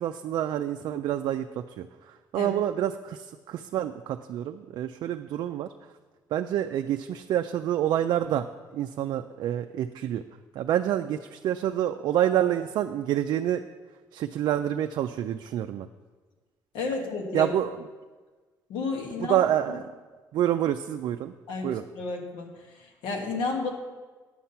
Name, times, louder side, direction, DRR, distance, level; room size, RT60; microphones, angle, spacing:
voice 1, 0.0-5.7 6.3-8.5 8.7-10.2 10.5-13.6 14.1-15.9 17.3-17.7 19.2-19.8 20.3-21.3 21.6-21.8, right 11 dB, 70° right, 6 dB, 0.3 m, -27 dB
voice 2, 16.7-17.5 18.7-19.4 19.7-19.8 21.5-23.7, left 3 dB, 90° left, 2 dB, 1.5 m, -32 dB
8.6 x 5.8 x 5.6 m, 1.3 s
cardioid pair, 100°, 8 cm